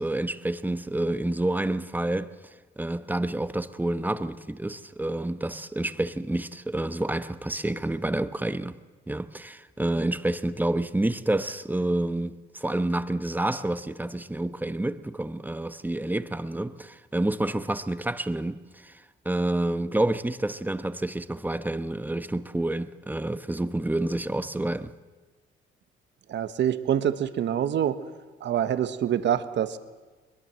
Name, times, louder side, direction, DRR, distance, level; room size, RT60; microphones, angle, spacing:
voice 1, 0.0-2.3 2.8-8.8 9.1-24.9, right 1 dB, 10° right, 1.0 m, -28 dB
voice 2, 26.3-28.0 28.4-29.8, right 10 dB, 65° right, 1.3 m, -25 dB
22.0 x 21.5 x 7.6 m
cardioid pair, 90°, 20 cm